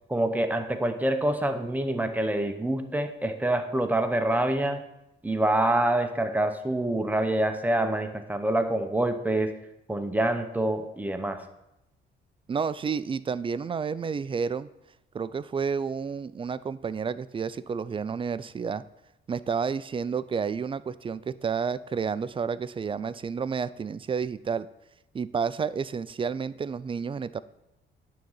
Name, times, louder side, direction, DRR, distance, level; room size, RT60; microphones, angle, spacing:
voice 1, 0.1-4.8 5.2-9.5 9.9-11.4, right 1 dB, 10° right, 6 dB, 0.9 m, -26 dB
voice 2, 12.5-14.7 15.1-18.8 19.3-24.7 25.1-27.4, right 6 dB, 25° right, 16 dB, 0.3 m, -30 dB
9.2 x 3.9 x 7.1 m, 0.89 s
cardioid pair, 90°, 20 cm